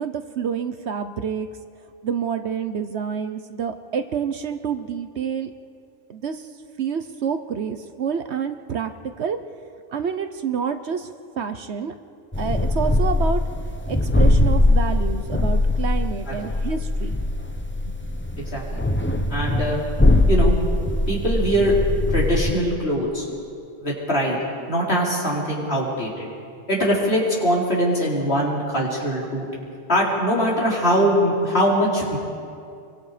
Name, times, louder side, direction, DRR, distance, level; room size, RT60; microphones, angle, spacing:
voice 1, 0.0-1.5 2.0-5.5 6.1-6.5 6.8-9.4 9.9-11.1 11.4-11.9 12.4-13.4 13.9-17.2, right 7 dB, 60° right, 9 dB, 1.1 m, -28 dB
sound 1, 12.3-22.5, left 2 dB, 10° left, 1.0 m, -21 dB
voice 2, 18.4-18.8 19.3-19.8 20.3-20.5 21.1-21.7 22.1-23.3 23.8-24.4 24.7-26.3 26.7-29.5 29.9-32.2, equal, 50° left, -4 dB, 4.5 m, -22 dB
27.0 x 23.5 x 5.0 m, 2.4 s
omnidirectional pair, 1.3 m